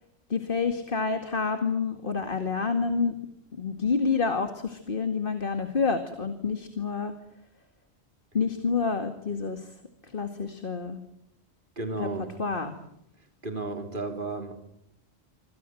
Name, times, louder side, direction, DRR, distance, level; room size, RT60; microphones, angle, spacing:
voice 1, 0.3-3.1 3.5-7.1 8.3-9.7 10.0-11.0 12.0-12.1 12.4-12.8, left 5 dB, 50° left, 7 dB, 2.3 m, -28 dB
voice 2, 11.8-12.3 13.4-14.5, right 2 dB, 50° right, 6 dB, 3.8 m, -33 dB
27.0 x 26.0 x 7.8 m, 0.79 s
omnidirectional pair, 1.1 m